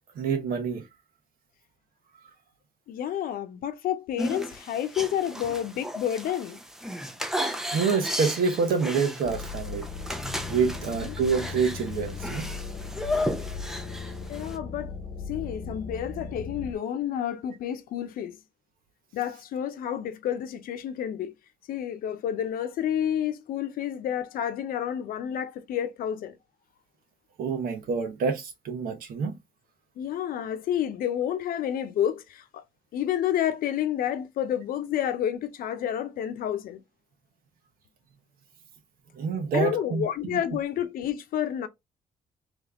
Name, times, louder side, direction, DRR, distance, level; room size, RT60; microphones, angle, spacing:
voice 1, 0.1-0.8 7.7-9.8 10.5-12.5 27.4-29.4 39.1-40.0 40.3-40.4, right 5 dB, 80° right, 1.2 m, -27 dB
voice 2, 2.9-6.6 11.0-11.1 14.3-14.9 15.3-18.4 19.1-21.3 21.7-26.3 30.0-32.6 32.9-36.8 39.5-41.7, left 10 dB, 90° left, 0.7 m, -30 dB
sound 1, 4.2-14.6, equal, 5° right, 0.5 m, -34 dB
sound 2, 9.2-16.7, left 5 dB, 50° left, 0.9 m, -37 dB
3.5 x 3.2 x 3.7 m
cardioid pair, 145°, 15 cm